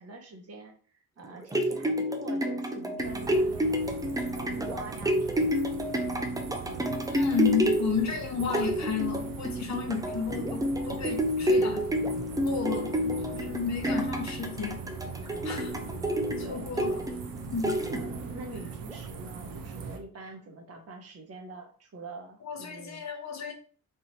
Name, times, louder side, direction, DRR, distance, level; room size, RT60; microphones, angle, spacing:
voice 1, 0.0-5.7 15.8-17.0 17.9-23.0, right 2 dB, 50° right, 0.9 m, -45 dB
sound 1, 1.2-18.4 18.9-19.0, equal, 10° right, 0.3 m, -29 dB
sound 2, 3.0-20.0, right 5 dB, 85° right, 0.8 m, -41 dB
voice 2, 7.1-11.8 12.4-14.8 15.4-15.8 16.5-17.0 17.5-17.8 22.4-23.5, left 6 dB, 55° left, 0.9 m, -32 dB
3.5 x 3.0 x 4.0 m
wide cardioid pair, 180°, 33 cm